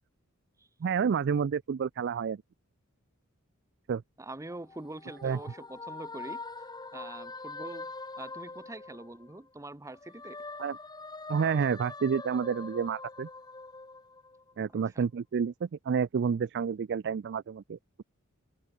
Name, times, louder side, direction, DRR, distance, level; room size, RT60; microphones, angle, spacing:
voice 1, 0.8-2.4 3.9-4.0 5.2-5.4 10.6-10.8 11.3-13.3 14.6-18.0, right 6 dB, 50° right, 0.4 m, -29 dB
voice 2, 4.2-6.4 6.9-7.9 8.2-10.4 14.9-15.0, right 2 dB, 15° right, 0.9 m, -44 dB
sound 1, 4.5-9.5 9.9-14.6, left 3 dB, 20° left, 2.1 m, -44 dB
head